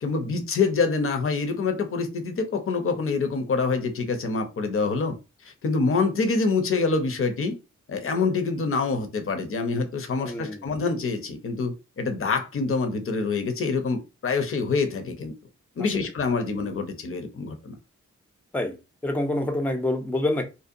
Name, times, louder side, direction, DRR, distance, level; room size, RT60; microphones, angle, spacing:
voice 1, 0.0-5.2 5.4-7.6 7.9-15.3 15.8-17.7, left 4 dB, 45° left, 0.6 m, -26 dB
voice 2, 10.2-10.6 15.8-16.1 18.5-18.7 19.0-20.5, left 1 dB, 5° left, 0.5 m, -27 dB
2.6 x 2.1 x 2.5 m
cardioid pair, 50°, 31 cm